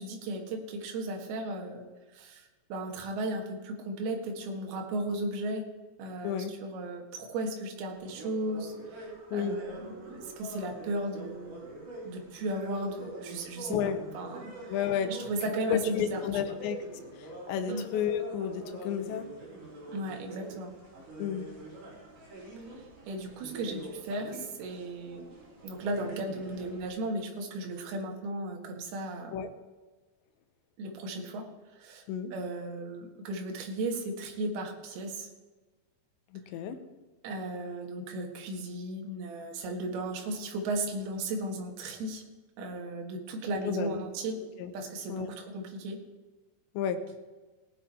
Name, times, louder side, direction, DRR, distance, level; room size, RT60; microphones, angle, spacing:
voice 1, 0.0-1.8 2.1-5.6 6.0-11.6 12.0-14.8 15.1-16.6 17.7-17.9 19.9-20.7 22.7-25.3 25.6-29.3 30.8-32.0 32.3-35.3 37.2-42.2 42.6-44.4 44.7-46.0, right 1 dB, 65° right, 2 dB, 3.4 m, -36 dB
sound 1, 7.9-26.9, right 2 dB, 50° right, 5.4 m, -45 dB
voice 2, 14.7-15.1 15.7-16.8 17.2-19.3 21.2-21.5 29.3-29.5 32.1-32.3 36.3-36.8 43.7-44.0 44.6-44.7 45.1-45.3 46.8-47.0, left 8 dB, 80° left, 8 dB, 3.2 m, -31 dB
17.5 x 8.9 x 4.4 m, 1.2 s
omnidirectional pair, 5.1 m